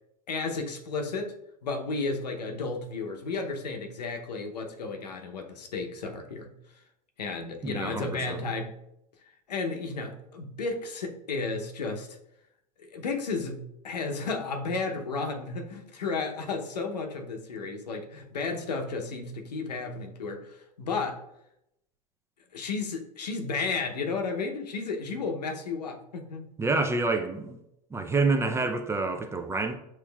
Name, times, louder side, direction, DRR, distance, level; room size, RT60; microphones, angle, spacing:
voice 1, 0.3-1.3 1.6-6.5 7.2-8.7 9.5-12.1 12.8-21.2 22.5-26.5, left 4 dB, 90° left, 0.7 m, -33 dB
voice 2, 7.6-8.4 26.6-27.6 27.9-29.8, right 3 dB, 15° right, 0.4 m, -28 dB
6.8 x 3.0 x 2.3 m
hypercardioid pair, 100°, 20 cm